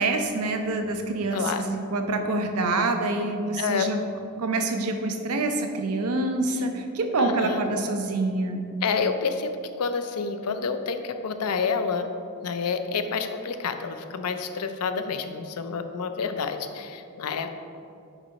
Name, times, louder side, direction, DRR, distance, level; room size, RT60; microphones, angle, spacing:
voice 1, 0.0-4.0 4.4-8.6, right 2 dB, 80° right, 5 dB, 0.6 m, -26 dB
voice 2, 1.3-1.6 3.6-3.9 7.2-7.6 8.8-9.5 9.8-12.1 12.4-17.6, left 5 dB, 85° left, 8 dB, 0.5 m, -28 dB
6.0 x 5.4 x 4.0 m, 2.5 s
head